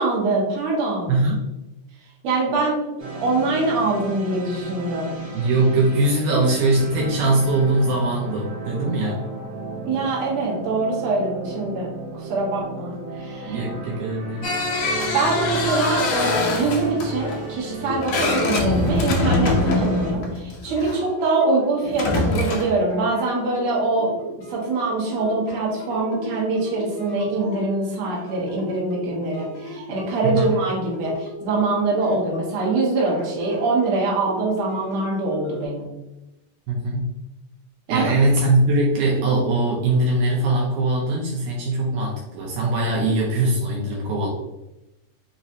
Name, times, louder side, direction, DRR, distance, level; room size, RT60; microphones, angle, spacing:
voice 1, 0.0-1.1 2.2-5.1 9.8-13.6 15.1-35.9 37.9-38.1, right 3 dB, 65° right, -4 dB, 2.3 m, -24 dB
voice 2, 1.1-1.4 5.3-9.2 13.5-14.5 30.2-30.6 36.7-37.1 37.9-44.3, right 2 dB, 85° right, -3 dB, 2.2 m, -21 dB
sound 1, 3.0-20.1, right 2 dB, 50° right, 1.9 m, -35 dB
sound 2, 14.4-21.0 21.8-22.8, left 2 dB, 70° left, 1.8 m, -24 dB
sound 3, 20.6-35.7, right 1 dB, 90° left, 1.0 m, -37 dB
5.4 x 3.0 x 2.7 m, 0.98 s
omnidirectional pair, 3.4 m